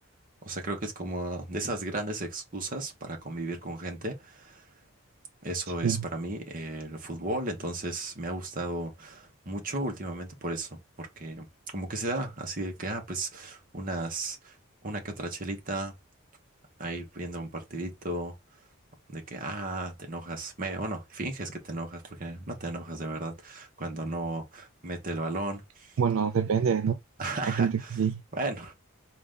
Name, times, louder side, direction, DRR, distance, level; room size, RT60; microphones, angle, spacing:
voice 1, 0.4-4.6 5.4-11.5 11.7-14.5 14.8-15.9 16.8-18.3 19.1-26.0 27.2-28.0 28.3-28.7, right 2 dB, 40° right, 1.1 m, -35 dB
voice 2, 26.0-27.0 27.4-28.2, right 7 dB, 65° right, 0.4 m, -26 dB
3.9 x 2.5 x 3.6 m
head